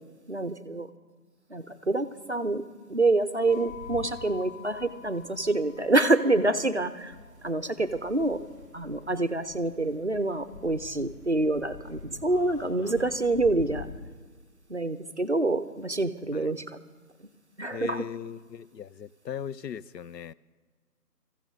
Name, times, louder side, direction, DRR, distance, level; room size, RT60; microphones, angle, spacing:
voice 1, 0.3-0.9 1.5-2.6 2.9-7.1 7.4-8.4 8.7-13.9 14.7-16.8 17.6-18.1, right 2 dB, 45° right, 0.5 m, -27 dB
sound 1, 3.5-14.0, left 4 dB, 45° left, 2.5 m, -46 dB
voice 2, 12.3-13.1 16.3-16.5 17.7-20.3, left 8 dB, 90° left, 0.6 m, -39 dB
24.0 x 15.0 x 2.7 m
figure-of-eight pair, 160°, 48 cm